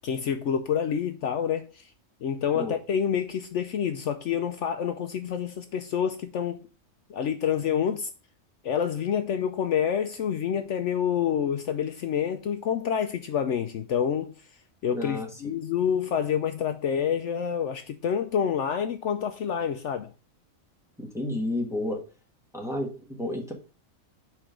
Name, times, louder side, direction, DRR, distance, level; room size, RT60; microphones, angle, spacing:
voice 1, 0.0-1.9 2.2-6.7 7.1-8.1 8.6-14.3 14.8-20.1, left 8 dB, 65° left, 0.9 m, -28 dB
voice 2, 14.9-15.3 21.0-22.0 22.5-23.5, left 1 dB, ahead, 1.3 m, -31 dB
5.9 x 4.4 x 5.0 m
omnidirectional pair, 1.4 m